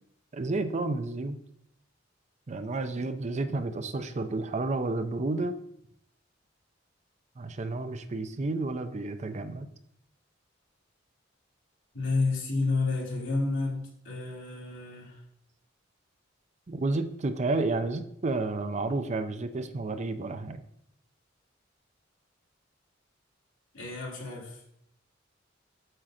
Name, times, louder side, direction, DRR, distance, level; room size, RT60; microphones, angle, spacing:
voice 1, 0.3-1.4 2.5-5.5 7.4-9.7 16.7-20.6, right 2 dB, 35° right, 9 dB, 0.5 m, -31 dB
voice 2, 11.9-15.2 23.7-24.6, left 3 dB, 85° left, -4 dB, 2.9 m, -30 dB
7.7 x 6.3 x 3.8 m, 0.72 s
head